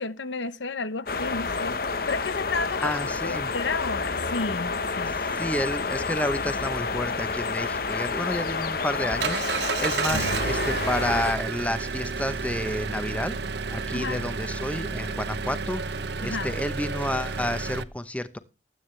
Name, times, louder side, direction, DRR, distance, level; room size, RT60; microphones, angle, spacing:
voice 1, 0.0-1.8 2.1-5.2 10.1-10.3 13.9-14.2 16.2-16.6, left 3 dB, 90° left, 0.9 m, -32 dB
sound 1, 1.1-11.3, left 4 dB, 55° left, 1.0 m, -29 dB
voice 2, 2.8-3.5 5.4-13.4 13.7-15.8 16.2-18.4, left 1 dB, 10° left, 0.8 m, -30 dB
Engine, 8.3-17.8, right 4 dB, 65° right, 0.8 m, -31 dB
19.5 x 9.3 x 3.3 m
head